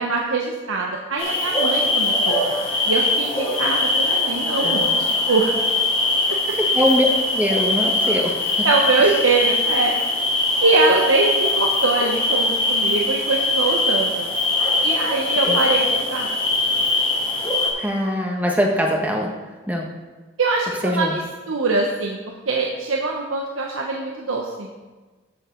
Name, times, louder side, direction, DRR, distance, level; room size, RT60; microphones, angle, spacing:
voice 1, 0.0-5.5 8.6-9.9 10.6-14.3 14.8-16.3 20.4-21.2 21.5-22.2 22.5-24.7, right 3 dB, 85° right, 0 dB, 1.0 m, -23 dB
sound 1, 1.2-17.7, left 2 dB, 25° left, 2.2 m, -21 dB
voice 2, 6.5-7.1 7.3-8.7 9.0-9.1 15.5-15.6 17.8-19.3 19.7-19.9 20.8-21.2, equal, 10° right, 0 dB, 1.3 m, -22 dB
14.0 x 7.1 x 3.9 m, 1.3 s
head